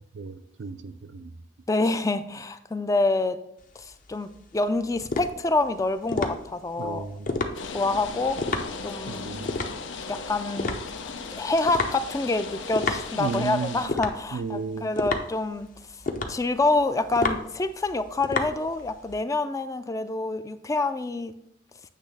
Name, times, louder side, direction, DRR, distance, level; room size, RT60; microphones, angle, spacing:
voice 1, 0.1-1.3 6.8-7.3 9.1-9.6 13.1-13.8 14.3-14.9, right 4 dB, 70° right, 0.4 m, -33 dB
voice 2, 1.7-3.4 3.8-7.1 7.7-8.4 8.8-9.3 10.1-10.8 11.4-15.7 16.3-21.3, left 2 dB, 20° left, 0.3 m, -27 dB
sound 1, 3.6-19.2, left 3 dB, 45° left, 0.7 m, -32 dB
sound 2, 7.5-13.9, left 5 dB, 90° left, 0.6 m, -37 dB
8.3 x 3.2 x 6.0 m
head